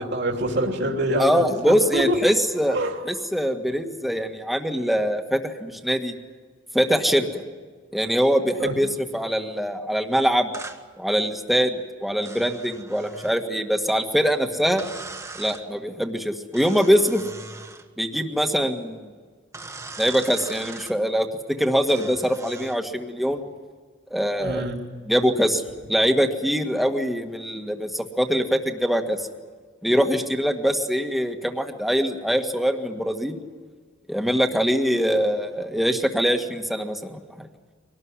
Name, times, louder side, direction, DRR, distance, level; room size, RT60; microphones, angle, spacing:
voice 1, 0.0-2.2 2.7-3.0 8.6-8.8 24.4-24.8, right 1 dB, 60° right, 1 dB, 3.1 m, -25 dB
voice 2, 1.2-2.8 3.1-6.1 6.7-7.4 7.9-10.5 11.0-14.8 15.3-17.2 18.0-19.0 20.0-23.4 24.1-24.7 25.1-25.6 25.9-29.3 29.8-33.4 34.1-37.5, equal, ahead, 5 dB, 1.7 m, -23 dB
sound 1, 10.5-10.8 12.2-13.4 14.8-15.7 16.5-17.9 19.5-21.0 21.9-22.8, right 3 dB, 15° right, 1.5 m, -40 dB
24.0 x 19.0 x 9.8 m, 1.5 s
head